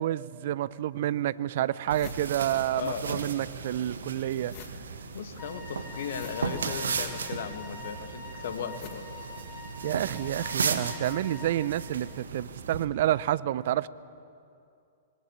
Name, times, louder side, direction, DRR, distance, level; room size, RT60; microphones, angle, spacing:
voice 1, 0.0-4.5 6.6-6.7 9.8-13.9, right 13 dB, 55° right, 19 dB, 0.7 m, -29 dB
sound 1, 0.7-0.8 1.3-1.4 1.6-3.2 3.4-10.0, left 9 dB, 45° left, 2.3 m, -50 dB
sound 2, 1.9-12.9, right 5 dB, 75° right, 1.8 m, -36 dB
voice 2, 2.7-3.3 5.1-9.1, left 7 dB, 60° left, 8 dB, 2.0 m, -37 dB
Wind instrument woodwind instrument, 5.4-11.7, left 5 dB, 25° left, 7.5 m, -45 dB
26.0 x 21.5 x 7.4 m, 2.5 s
figure-of-eight pair, 105°, 0 cm